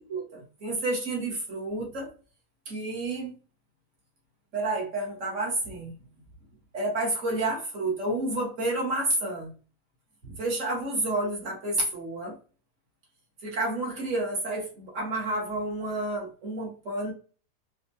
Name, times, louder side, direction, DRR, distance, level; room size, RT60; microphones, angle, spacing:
voice 1, 0.0-2.1 2.7-3.3 4.5-5.9 6.7-9.5 10.2-12.4 13.4-17.1, right 2 dB, 50° right, -3 dB, 1.8 m, -30 dB
4.9 x 2.4 x 2.7 m, 0.37 s
omnidirectional pair, 1.8 m